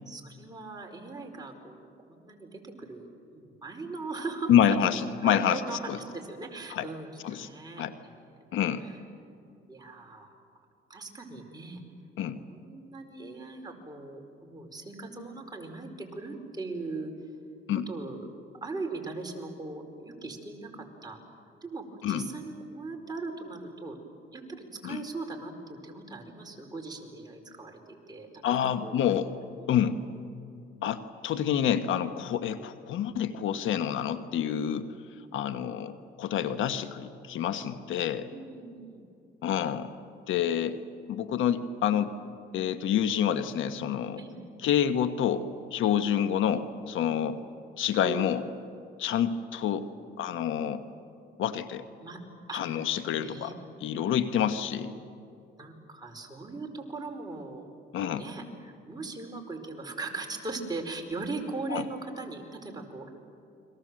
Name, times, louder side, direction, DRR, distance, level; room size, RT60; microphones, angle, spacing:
voice 1, 0.1-3.1 3.3-4.5 5.2-8.2 9.7-10.3 10.9-11.8 12.5-17.1 17.9-18.3 18.6-21.2 21.6-24.0 24.3-29.0 38.2-39.0 44.2-44.4 48.0-48.4 52.0-52.2 52.5-52.6 53.1-53.5 55.6-57.6 58.1-63.1, right 3 dB, 20° right, 1 dB, 4.9 m, -39 dB
voice 2, 4.5-6.0 6.7-6.9 7.2-7.5 7.8-7.9 8.5-8.8 12.2-12.4 17.7-17.9 22.0-22.3 24.8-25.0 28.4-29.3 29.7-30.0 30.8-34.9 35.3-38.3 39.4-39.9 40.3-40.8 41.1-42.1 42.5-44.2 44.6-47.4 47.8-48.4 49.0-49.9 50.2-50.8 51.4-51.8 52.5-53.5 53.8-54.9 57.9-58.3 61.7-61.8, left 9 dB, 80° left, 10 dB, 1.2 m, -28 dB
30.0 x 23.0 x 7.7 m, 2.5 s
cardioid pair, 90°, 20 cm